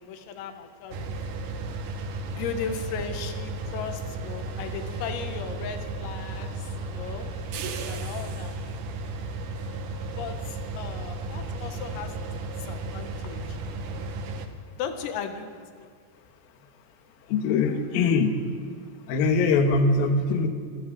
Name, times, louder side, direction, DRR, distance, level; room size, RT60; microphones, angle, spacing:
voice 1, 0.0-1.7 2.3-7.3 7.9-8.6 10.2-12.3 12.6-13.6 14.8-15.9, left 6 dB, 85° left, 6 dB, 4.2 m, -37 dB
sound 1, 0.9-14.5, right 2 dB, 90° right, 1.8 m, -34 dB
voice 2, 17.3-18.4 19.1-20.5, left 4 dB, 60° left, 4 dB, 2.7 m, -22 dB
27.0 x 13.5 x 7.7 m, 2.1 s
omnidirectional pair, 5.9 m